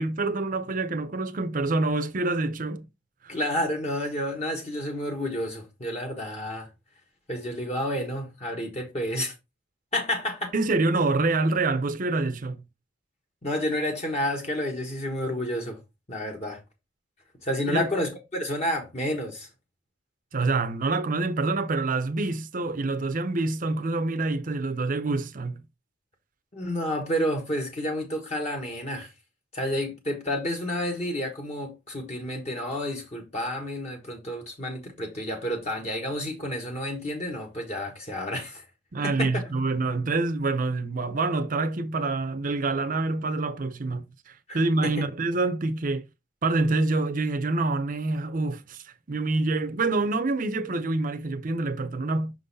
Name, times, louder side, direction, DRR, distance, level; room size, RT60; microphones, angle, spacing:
voice 1, 0.0-2.9 3.2-3.4 10.5-12.6 17.7-17.9 20.3-25.6 38.9-46.1 46.4-52.3, right 3 dB, 45° right, 0.7 m, -26 dB
voice 2, 3.3-6.7 7.3-9.3 9.9-10.5 13.4-15.8 16.1-16.6 17.4-19.5 26.5-29.1 29.5-38.6 39.0-39.3 44.5-45.1, equal, 35° left, 1.3 m, -30 dB
6.0 x 3.9 x 4.0 m
head